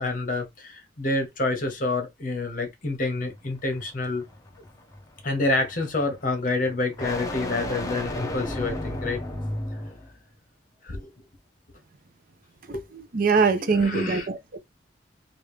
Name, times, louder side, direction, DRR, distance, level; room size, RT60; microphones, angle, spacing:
voice 1, 0.0-4.2 5.2-9.2 10.8-11.1 12.7-12.9 13.6-14.3, left 2 dB, 45° left, 1.2 m, -28 dB
sound 1, 3.1-10.2, left 1 dB, 20° left, 0.8 m, -35 dB
voice 2, 13.1-14.6, right 4 dB, 50° right, 0.6 m, -22 dB
3.2 x 2.5 x 3.2 m
head